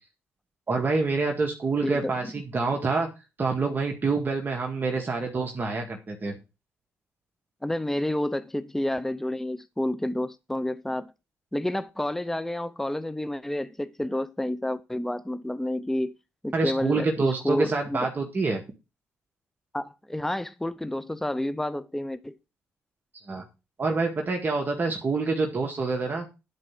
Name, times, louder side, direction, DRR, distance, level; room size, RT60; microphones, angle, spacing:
voice 1, 0.7-3.1 3.4-6.4 16.5-18.6 23.3-23.4 23.8-26.3, right 3 dB, 35° right, 1.9 m, -27 dB
voice 2, 7.6-11.1 11.5-16.1 16.4-18.1 19.7-22.3, left 1 dB, 5° left, 0.6 m, -30 dB
10.5 x 4.7 x 5.9 m
cardioid pair, 85°, 5 cm